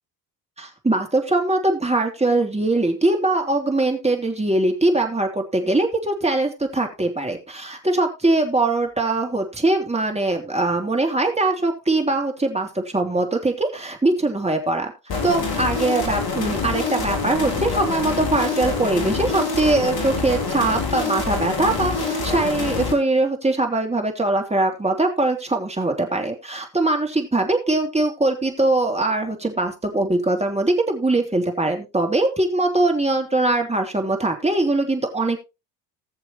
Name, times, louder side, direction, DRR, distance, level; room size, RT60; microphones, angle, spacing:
voice 1, 0.6-14.9 15.2-35.4, right 2 dB, 15° right, 3 dB, 3.1 m, -22 dB
sound 1, 15.1-22.9, left 4 dB, 50° left, 3.7 m, -26 dB
20.5 x 6.8 x 3.1 m, 0.26 s
hypercardioid pair, 60°, 48 cm